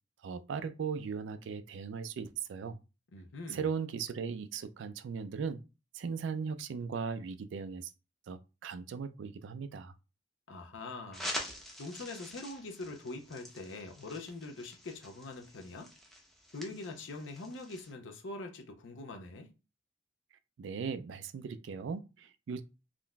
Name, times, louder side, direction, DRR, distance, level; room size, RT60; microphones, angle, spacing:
voice 1, 0.2-2.8 3.5-5.6 5.9-7.9 8.3-9.9 20.6-22.6, right 6 dB, 75° right, 0.3 m, -38 dB
voice 2, 3.1-3.7 10.5-11.3 11.8-15.9 16.5-19.5, left 2 dB, 85° left, 0.6 m, -43 dB
sound 1, 11.1-17.9, equal, ahead, 0.6 m, -45 dB
3.7 x 2.5 x 2.2 m
head